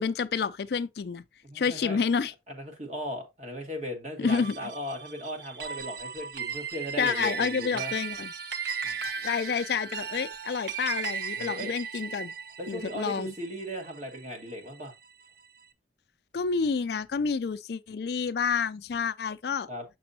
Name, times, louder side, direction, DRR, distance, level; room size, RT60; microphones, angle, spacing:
voice 1, 0.0-1.2 1.5-2.3 4.2-4.6 7.0-8.3 9.2-12.3 12.7-13.3 16.3-19.7, left 5 dB, 60° left, 0.4 m, -29 dB
voice 2, 1.4-2.0 2.5-7.9 8.8-9.0 11.4-11.7 12.6-14.9 19.7-19.8, equal, 40° right, 1.9 m, -37 dB
sound 1, 4.3-14.9, right 6 dB, 65° right, 0.7 m, -36 dB
6.8 x 6.1 x 2.8 m
head